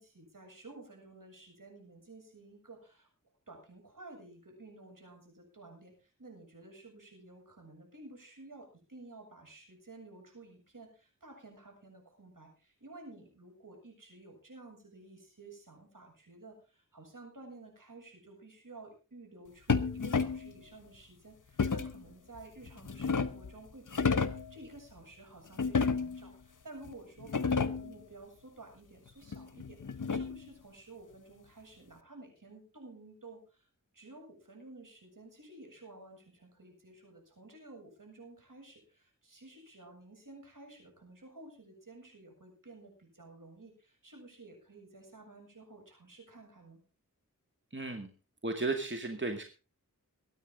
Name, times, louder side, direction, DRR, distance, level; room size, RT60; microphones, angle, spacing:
voice 1, 0.0-3.1 3.5-33.7 33.9-46.8, right 2 dB, 70° right, 2 dB, 7.4 m, -53 dB
sound 1, 19.7-20.5 21.6-22.0 22.7-23.5 23.9-24.5 25.6-26.3 26.9-27.0 27.2-27.9 29.3-30.5, left 5 dB, 65° left, 1.1 m, -31 dB
voice 2, 47.7-48.1 48.4-49.4, right 3 dB, 35° right, 4 dB, 2.2 m, -34 dB
22.0 x 9.5 x 3.9 m, 0.33 s
wide cardioid pair, 40°, 33 cm